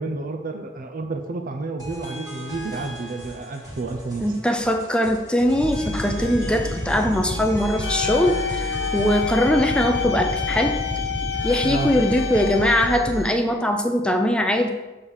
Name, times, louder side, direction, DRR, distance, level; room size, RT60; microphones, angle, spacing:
voice 1, 0.0-4.3 11.6-11.9, right 3 dB, 45° right, 6 dB, 0.5 m, -30 dB
sound 1, 1.8-9.2, equal, 20° right, 1.9 m, -38 dB
voice 2, 4.2-10.8 11.4-14.7, equal, 5° left, 4 dB, 0.5 m, -21 dB
sound 2, 5.6-13.3, left 1 dB, 85° right, 2.3 m, -30 dB
sound 3, 7.8-12.9, left 9 dB, 75° left, 1.1 m, -29 dB
7.1 x 3.6 x 6.3 m, 1.1 s
head